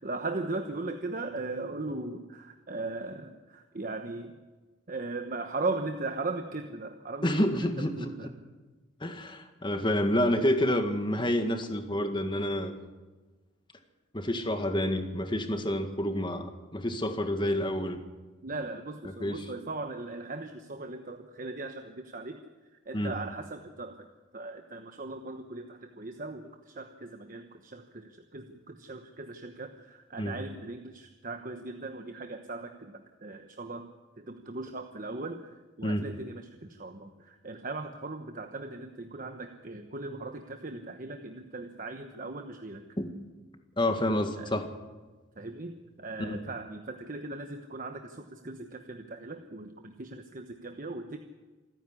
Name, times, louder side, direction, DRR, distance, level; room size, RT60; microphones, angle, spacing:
voice 1, 0.0-4.3 4.9-8.3 18.4-22.4 22.9-24.1 24.3-33.9 34.2-35.5 35.8-42.8 44.4-44.5 45.4-51.2, right 3 dB, 45° right, 6 dB, 1.1 m, -38 dB
voice 2, 7.2-8.3 9.0-12.7 14.1-18.0 19.0-19.5 22.9-23.2 30.2-30.4 35.8-36.1 43.0-43.1 43.8-44.6 46.2-46.4, left 1 dB, 25° left, 6 dB, 1.9 m, -29 dB
27.0 x 10.0 x 9.7 m, 1.3 s
head